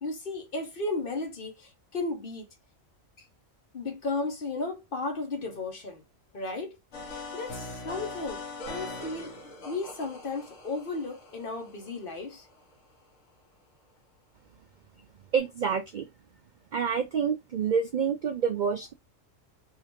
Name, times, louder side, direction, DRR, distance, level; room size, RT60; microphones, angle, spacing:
voice 1, 0.0-2.5 3.2-3.3 3.7-6.0 6.3-6.8 7.1-9.3 9.7-12.5, left 3 dB, 45° left, 1.0 m, -34 dB
sound 1, 6.9-12.7, left 3 dB, 80° left, 1.4 m, -42 dB
voice 2, 15.3-16.1 16.7-18.9, right 6 dB, 75° right, 0.4 m, -27 dB
3.7 x 2.5 x 3.0 m
omnidirectional pair, 1.4 m